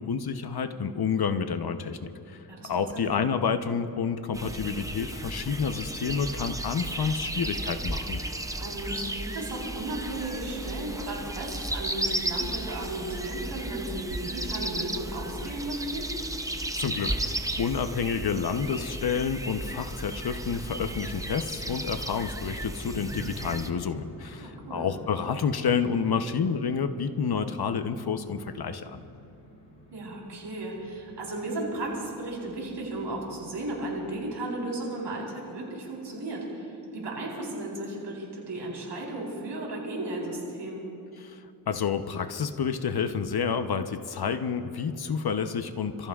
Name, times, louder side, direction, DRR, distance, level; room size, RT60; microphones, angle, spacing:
voice 1, 0.0-8.2 16.7-29.0 41.2-46.1, left 6 dB, 60° left, 9 dB, 0.9 m, -29 dB
voice 2, 2.5-3.2 8.6-16.1 24.4-24.9 29.9-40.8, right 2 dB, 85° right, -3 dB, 4.2 m, -35 dB
sound 1, 4.3-23.7, right 1 dB, 10° right, 0.7 m, -34 dB
sound 2, 22.9-34.2, equal, 85° left, 4.3 m, -49 dB
28.5 x 15.0 x 2.4 m, 2.7 s
cardioid pair, 60°, 42 cm